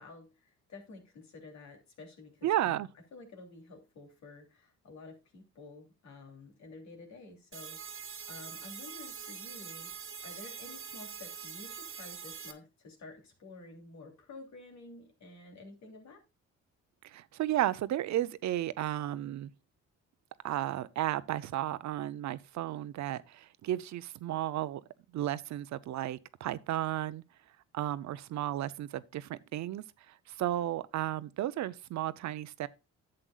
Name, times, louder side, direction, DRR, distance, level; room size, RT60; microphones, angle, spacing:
voice 1, 0.0-2.8 3.1-16.2, left 3 dB, 65° left, 2.9 m, -51 dB
voice 2, 2.4-2.9 17.0-19.5 20.4-24.8 25.1-27.2 27.7-32.7, right 13 dB, 70° right, 0.6 m, -33 dB
sound 1, 7.5-12.5, right 7 dB, 45° right, 1.2 m, -44 dB
11.0 x 7.8 x 2.4 m
cardioid pair, 90°, 30 cm